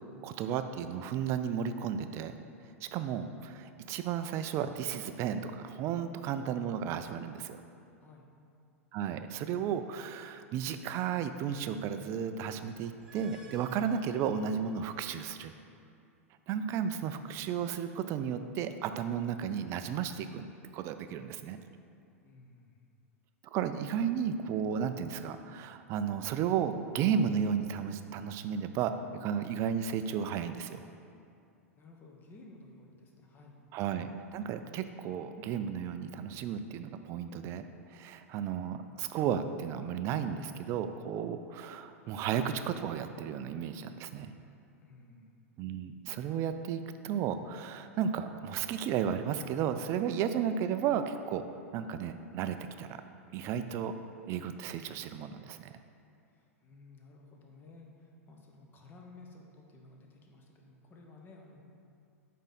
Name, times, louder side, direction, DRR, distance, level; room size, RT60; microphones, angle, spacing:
voice 1, 0.2-2.3 2.8-7.6 8.9-15.5 16.5-20.4 20.7-21.6 23.4-30.8 33.7-37.6 37.9-44.3 45.6-51.4 51.7-53.0 53.3-53.9 54.3-55.7, right 8 dB, 35° right, 9 dB, 0.4 m, -33 dB
voice 2, 8.0-8.3 22.2-22.8 31.8-33.6 44.8-45.3 56.3-61.6, left 2 dB, 25° left, 0 dB, 1.0 m, -55 dB
sound 1, 12.9-15.1, right 1 dB, 10° right, 1.1 m, -57 dB
8.6 x 3.7 x 4.2 m, 2.5 s
figure-of-eight pair, 95°, 8 cm